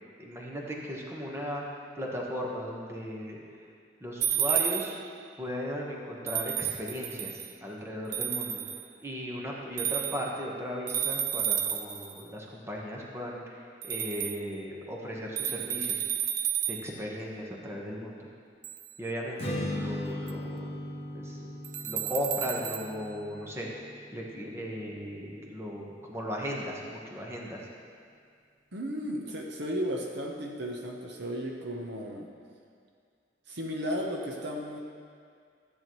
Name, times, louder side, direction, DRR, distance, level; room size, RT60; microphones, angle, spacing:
voice 1, 0.2-1.6 2.0-3.4 4.0-5.0 5.4-8.6 9.0-16.0 16.7-18.3 19.0-20.7 21.1-21.4 21.8-23.8 24.1-27.6, equal, 15° right, -3 dB, 1.2 m, -36 dB
sound 1, 4.2-5.1 6.3-7.5 8.1-8.9 9.8-10.4 10.9-12.2 13.8-14.4 15.4-17.0 18.6-18.9 20.3-20.4 21.6-22.9, right 9 dB, 50° right, 0.5 m, -31 dB
Strum, 19.4-25.7, left 1 dB, 35° left, 1.2 m, -39 dB
voice 2, 28.7-32.3 33.5-34.8, equal, 65° right, 1 dB, 0.9 m, -34 dB
13.5 x 8.6 x 3.1 m, 2.2 s
head